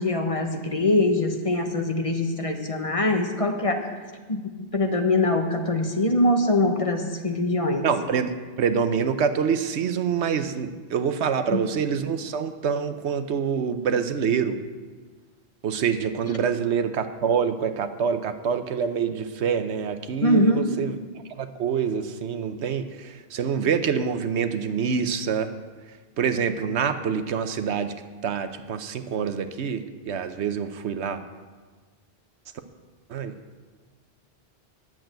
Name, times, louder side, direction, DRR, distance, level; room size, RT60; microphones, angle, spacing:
voice 1, 0.0-3.9 4.3-7.8 11.5-11.6 20.2-20.7, left 2 dB, 30° left, 4 dB, 1.1 m, -23 dB
voice 2, 7.8-8.3 8.6-14.6 15.6-20.9 21.4-25.5 26.2-27.9 28.2-31.2 33.1-33.3, right 7 dB, 85° right, 10 dB, 1.1 m, -26 dB
10.5 x 7.5 x 8.9 m, 1.4 s
omnidirectional pair, 1.1 m